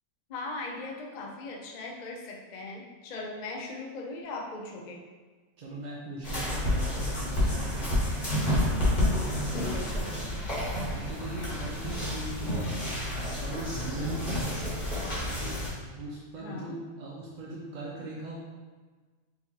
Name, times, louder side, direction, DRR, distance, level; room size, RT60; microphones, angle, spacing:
voice 1, 0.3-5.0 8.3-8.4 9.3-10.3 16.4-16.7, left 2 dB, 85° left, 0 dB, 0.3 m, -39 dB
voice 2, 5.6-8.2 10.9-12.8 13.1-14.5 15.8-18.3, right 2 dB, 50° right, -4 dB, 0.5 m, -40 dB
sound 1, 6.2-15.7, left 1 dB, 30° left, 1.3 m, -29 dB
4.6 x 3.5 x 2.8 m, 1.4 s
omnidirectional pair, 1.5 m